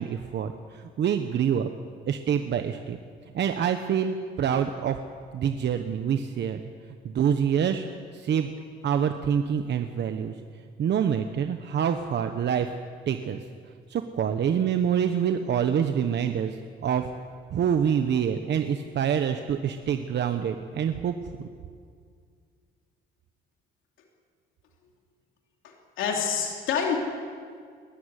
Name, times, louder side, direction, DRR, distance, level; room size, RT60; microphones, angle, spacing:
voice 1, 0.0-1.7 2.1-3.0 3.3-5.0 5.3-6.6 7.0-7.9 8.1-8.5 8.8-10.3 10.8-12.7 13.1-13.4 13.9-16.6 16.8-17.1 17.5-21.5, right 8 dB, 60° right, 7 dB, 1.1 m, -26 dB
voice 2, 25.6-27.0, left 7 dB, 90° left, 1 dB, 3.0 m, -27 dB
20.5 x 14.5 x 9.9 m, 2.1 s
cardioid pair, 90°, 20 cm